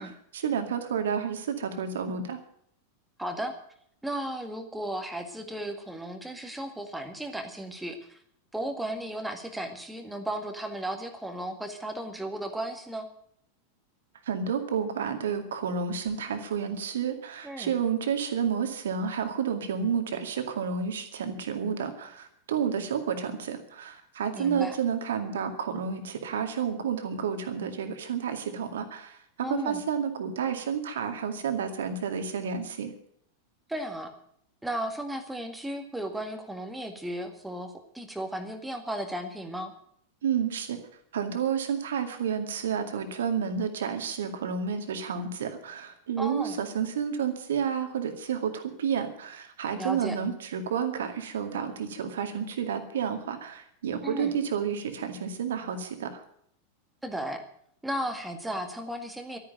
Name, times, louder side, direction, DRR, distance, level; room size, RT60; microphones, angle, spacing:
voice 1, 0.0-2.4 14.3-32.9 40.2-40.8 41.1-56.2, right 7 dB, 60° right, 6 dB, 2.2 m, -30 dB
voice 2, 3.2-3.6 4.0-8.2 8.5-13.1 17.4-17.7 24.3-24.8 29.4-29.8 33.7-34.1 34.6-39.7 46.2-46.6 49.8-50.2 54.0-54.3 57.0-57.4 57.8-59.4, right 1 dB, 5° right, 5 dB, 2.0 m, -35 dB
13.0 x 9.6 x 9.1 m, 0.66 s
figure-of-eight pair, 90°, 0 cm